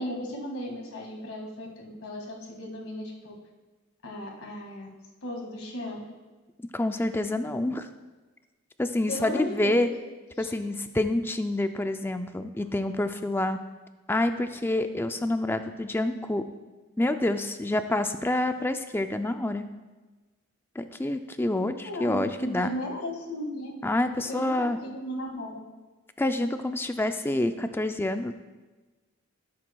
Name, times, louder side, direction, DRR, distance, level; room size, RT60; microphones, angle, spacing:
voice 1, 0.0-3.3 4.0-4.9 5.2-6.0 9.1-9.9 10.4-10.5 21.6-23.7 24.3-25.6, left 1 dB, 75° left, 0 dB, 1.9 m, -36 dB
voice 2, 6.7-7.9 8.8-9.9 10.4-13.6 14.1-16.4 17.0-19.7 20.8-22.7 23.8-24.8 26.2-28.3, left 1 dB, 10° left, 8 dB, 0.3 m, -27 dB
15.0 x 7.5 x 2.3 m, 1.2 s
head